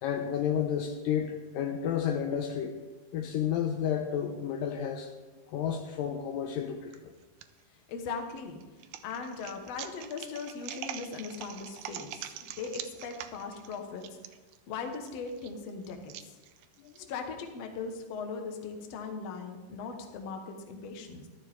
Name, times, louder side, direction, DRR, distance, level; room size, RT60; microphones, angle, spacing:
voice 1, 0.0-2.8 3.1-5.1 5.5-7.1 16.8-17.1, left 8 dB, 80° left, 4 dB, 2.2 m, -31 dB
sound 1, 6.9-7.4 8.0-17.0, right 11 dB, 80° right, 2.0 m, -44 dB
voice 2, 7.7-8.6 9.0-14.2 14.7-16.3 17.1-21.3, left 5 dB, 55° left, 4 dB, 1.9 m, -39 dB
14.0 x 12.5 x 3.6 m, 1.3 s
omnidirectional pair, 4.3 m